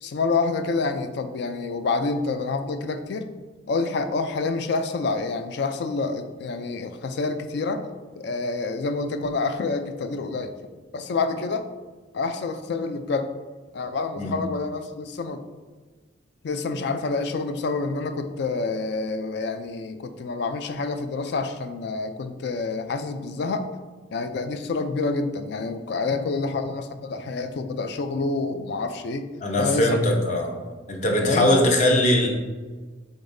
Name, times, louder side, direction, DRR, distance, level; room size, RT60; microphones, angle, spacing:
voice 1, 0.0-3.3 3.7-7.8 8.1-10.5 10.9-11.6 12.1-13.3 13.7-15.4 16.4-23.7 24.1-29.3 29.6-30.0 31.2-31.5, left 3 dB, 60° left, 8 dB, 0.4 m, -27 dB
voice 2, 29.4-30.5 30.9-32.3, left 1 dB, 40° left, 1 dB, 0.7 m, -20 dB
5.1 x 3.9 x 2.6 m, 1.4 s
head